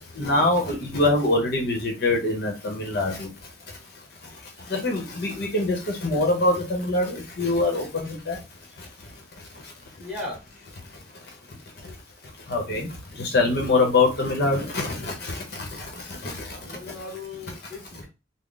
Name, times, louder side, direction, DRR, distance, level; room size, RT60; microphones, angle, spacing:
voice 1, 0.2-3.3 4.7-8.4 12.5-12.9 13.2-15.4 16.2-16.3, left 2 dB, 55° left, 0.9 m, -24 dB
voice 2, 10.0-10.4 16.5-18.1, left 2 dB, 5° right, 1.5 m, -37 dB
3.7 x 2.0 x 3.7 m
head